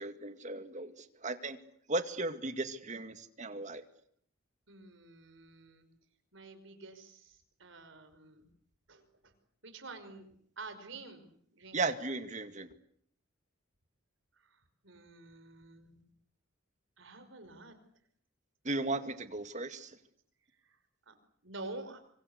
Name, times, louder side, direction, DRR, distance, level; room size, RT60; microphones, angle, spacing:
voice 1, 0.0-1.6 1.9-3.8 11.7-12.7 18.6-20.0, right 2 dB, 35° right, 9 dB, 2.2 m, -36 dB
voice 2, 4.7-5.9 6.3-8.5 8.9-9.3 9.6-11.9 14.4-16.0 17.0-17.8 20.6-20.8 21.1-21.2 21.4-22.0, right 2 dB, 60° right, 9 dB, 5.4 m, -49 dB
25.5 x 25.0 x 8.3 m, 0.65 s
head